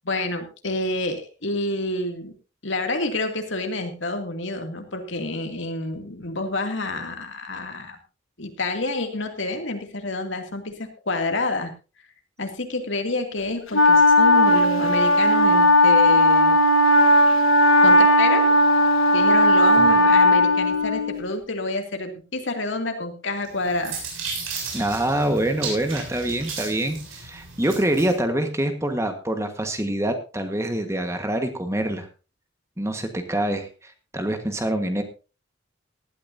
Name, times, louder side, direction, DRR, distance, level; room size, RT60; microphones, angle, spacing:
voice 1, 0.0-2.3 2.6-8.0 8.4-11.7 12.4-16.6 17.8-18.5 19.1-24.0, left 2 dB, 65° left, 4 dB, 2.6 m, -28 dB
Wind instrument woodwind instrument, 13.7-21.3, left 1 dB, 90° left, 1.4 m, -16 dB
sound 1, 23.4-28.2, right 5 dB, 90° right, 7.0 m, -35 dB
voice 2, 24.7-32.1 32.8-35.0, right 1 dB, 15° right, 6 dB, 1.5 m, -25 dB
18.5 x 13.0 x 2.7 m, 0.32 s
head